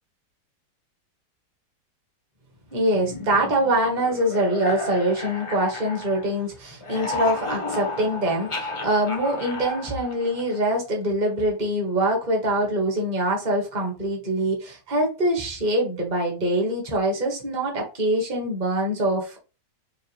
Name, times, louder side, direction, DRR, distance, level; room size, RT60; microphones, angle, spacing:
voice 1, 2.7-19.4, right 1 dB, 30° right, 1.2 m, -24 dB
sound 1, 2.9-6.4 6.7-10.7, left 3 dB, 45° left, 0.4 m, -33 dB
5.1 x 2.3 x 3.2 m
omnidirectional pair, 1.9 m